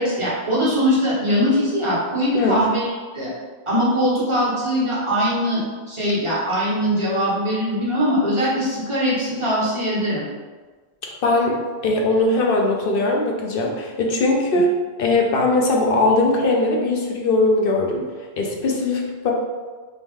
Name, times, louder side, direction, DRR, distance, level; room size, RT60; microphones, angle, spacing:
voice 1, 0.0-3.3 3.7-5.6 5.9-10.2, equal, 30° right, -8 dB, 1.2 m, -21 dB
voice 2, 11.2-11.6 11.8-14.7 15.0-18.1 18.4-19.3, left 2 dB, 60° left, 0 dB, 0.8 m, -20 dB
3.6 x 3.0 x 3.6 m, 1.4 s
omnidirectional pair, 1.1 m